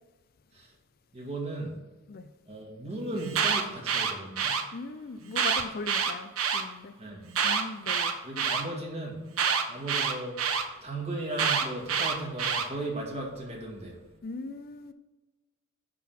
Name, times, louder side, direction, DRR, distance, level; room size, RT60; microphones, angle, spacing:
voice 1, 1.1-1.7 2.5-4.6 7.0-7.2 8.2-9.2 9.7-10.4 10.8-14.0, right 2 dB, 30° right, 2.1 m, -36 dB
Alarm, 3.2-4.6 5.3-6.6 7.3-8.6 9.4-10.6 11.4-12.7, right 6 dB, 80° right, 1.0 m, -27 dB
voice 2, 4.7-7.0 7.4-8.1 14.2-14.9, left 3 dB, 45° left, 0.4 m, -39 dB
10.5 x 3.8 x 5.9 m
head